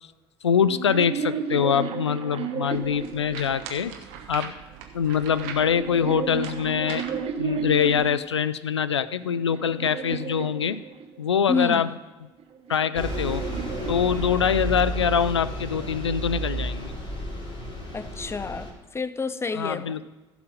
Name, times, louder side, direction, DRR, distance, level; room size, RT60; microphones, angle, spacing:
voice 1, 0.4-4.0 4.3-4.5 4.9-7.0 7.4-10.8 11.2-11.9 12.7-13.4 13.9-17.0 19.5-20.1, left 7 dB, 85° left, 16 dB, 0.4 m, -24 dB
sound 1, 0.5-3.9 4.9-8.3 8.9-11.3 12.4-14.8, right 7 dB, 45° right, 1.0 m, -33 dB
sound 2, 2.7-8.1, right 7 dB, 60° right, 1.3 m, -42 dB
voice 2, 11.5-11.9 17.9-20.1, left 4 dB, 20° left, 14 dB, 0.6 m, -29 dB
Bus, 12.9-18.7, right 1 dB, 35° left, 3.5 m, -32 dB
15.5 x 6.1 x 5.0 m, 1.2 s
figure-of-eight pair, 55°, 14 cm